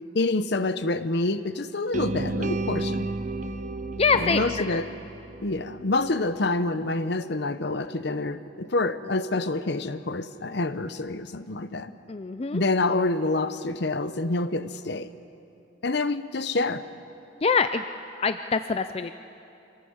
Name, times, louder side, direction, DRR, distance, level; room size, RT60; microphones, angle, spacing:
voice 1, 0.1-3.1 4.1-4.9 5.4-11.9 12.5-15.1 15.8-16.8, left 2 dB, 60° left, 13 dB, 0.8 m, -27 dB
sound 1, 1.9-6.0, right 2 dB, 40° right, 0.8 m, -32 dB
voice 2, 4.0-4.8 12.1-12.6 17.4-17.8 18.2-19.1, left 5 dB, 30° left, 10 dB, 0.4 m, -24 dB
25.5 x 17.5 x 8.0 m, 2.7 s
head